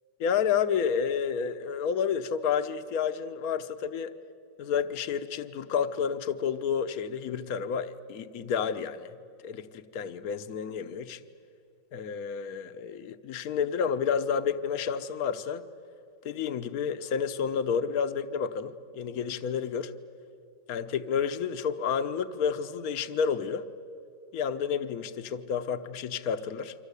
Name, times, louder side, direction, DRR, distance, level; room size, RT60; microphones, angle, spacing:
voice 1, 0.2-4.1 4.6-9.1 9.4-11.2 11.9-15.6 16.2-19.9 20.7-23.7 24.3-26.7, left 7 dB, 55° left, 12 dB, 1.3 m, -30 dB
29.0 x 24.5 x 8.3 m, 2.6 s
omnidirectional pair, 2.1 m